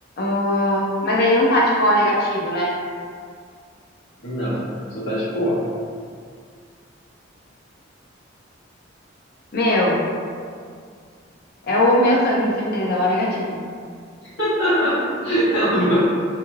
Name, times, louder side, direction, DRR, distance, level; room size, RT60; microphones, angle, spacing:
voice 1, 0.2-2.7 9.5-10.0 11.7-13.6, left 1 dB, 50° left, -4 dB, 0.6 m, -19 dB
voice 2, 4.2-4.7 4.9-5.6 14.4-16.0, equal, 80° left, -12 dB, 1.2 m, -21 dB
2.9 x 2.6 x 2.6 m, 2.1 s
head